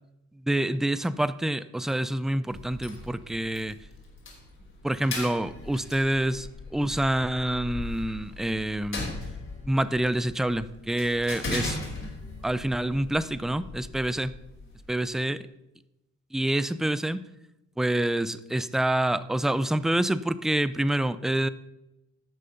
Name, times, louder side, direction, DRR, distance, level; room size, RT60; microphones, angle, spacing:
voice 1, 0.3-3.8 4.8-9.1 9.6-12.1 12.4-14.4 14.9-15.5 16.3-17.2 17.8-21.5, right 1 dB, ahead, 16 dB, 0.3 m, -27 dB
sound 1, 2.5-14.9, left 2 dB, 40° left, 3.4 m, -39 dB
10.5 x 6.5 x 5.7 m, 0.94 s
cardioid pair, 90°, 30 cm